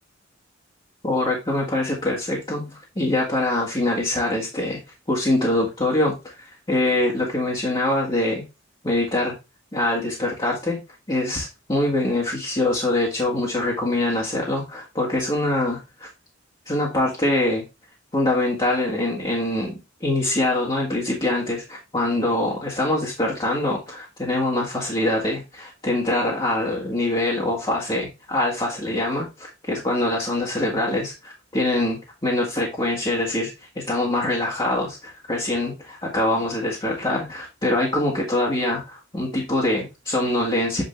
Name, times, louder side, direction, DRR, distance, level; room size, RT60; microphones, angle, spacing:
voice 1, 1.0-4.8 5.1-8.4 8.8-9.3 9.7-10.8 11.1-16.1 16.7-17.6 18.1-40.8, left 1 dB, 25° left, -3 dB, 1.9 m, -24 dB
8.3 x 5.0 x 3.3 m, 0.26 s
head